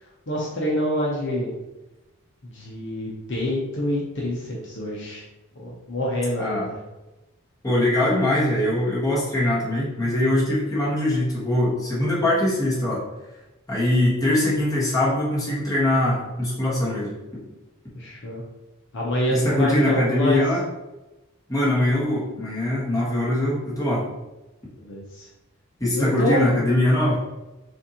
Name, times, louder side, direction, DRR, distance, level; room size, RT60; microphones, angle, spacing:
voice 1, 0.3-1.5 2.4-5.2 5.5-6.8 17.9-18.4 18.9-20.4 24.8-25.3 25.9-26.6, equal, 55° left, -4 dB, 0.8 m, -26 dB
voice 2, 7.6-13.0 13.7-17.4 19.3-20.6 21.5-24.1 25.8-27.2, left 1 dB, 15° left, -7 dB, 1.3 m, -22 dB
6.2 x 2.6 x 2.9 m, 1.0 s
head